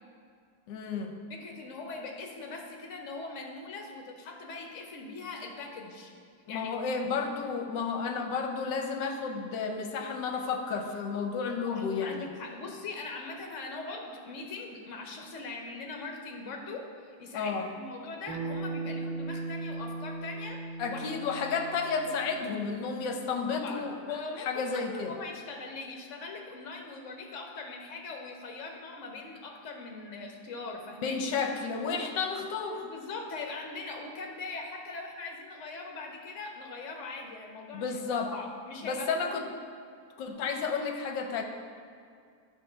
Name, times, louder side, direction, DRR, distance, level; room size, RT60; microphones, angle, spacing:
voice 1, 0.7-1.2 6.5-12.3 17.3-17.7 20.8-24.0 24.4-25.2 31.0-32.9 37.7-38.3 38.8-39.5 40.2-41.4, left 5 dB, 70° left, 4 dB, 1.3 m, -32 dB
voice 2, 1.3-6.1 6.5-6.7 11.7-20.6 20.9-21.0 22.0-22.3 23.5-31.2 32.8-38.0 38.3-39.4, left 3 dB, 50° left, 1 dB, 1.0 m, -41 dB
Bass guitar, 18.3-22.7, right 3 dB, 50° right, 1.8 m, -38 dB
10.0 x 4.0 x 5.6 m, 2.3 s
omnidirectional pair, 2.2 m